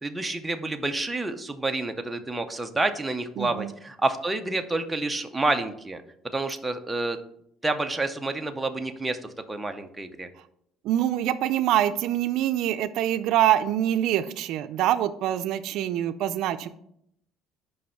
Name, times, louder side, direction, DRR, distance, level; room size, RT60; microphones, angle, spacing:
voice 1, 0.0-6.0 6.3-7.2 7.6-9.2 9.5-10.3, right 2 dB, 10° right, 5 dB, 0.6 m, -28 dB
voice 2, 3.4-3.7 10.8-16.7, right 12 dB, 65° right, 10 dB, 0.4 m, -25 dB
5.4 x 5.2 x 5.6 m, 0.72 s
cardioid pair, 145°, 0 cm